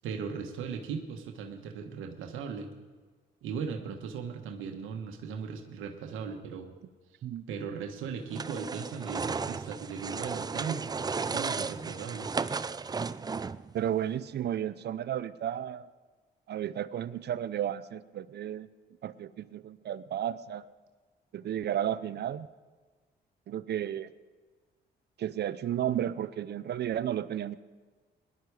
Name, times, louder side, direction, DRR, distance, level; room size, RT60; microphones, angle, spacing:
voice 1, 0.0-2.7 3.4-6.8 7.5-10.9 11.3-12.4, right 6 dB, 85° right, 4 dB, 1.3 m, -38 dB
sound 1, 8.3-13.7, right 4 dB, 20° right, 0.4 m, -34 dB
voice 2, 13.7-15.8 16.5-18.7 19.0-20.6 21.3-22.5 23.5-24.1 25.2-27.6, right 10 dB, 60° right, 15 dB, 0.6 m, -33 dB
19.0 x 11.0 x 4.9 m, 1.4 s
cardioid pair, 90°, 20 cm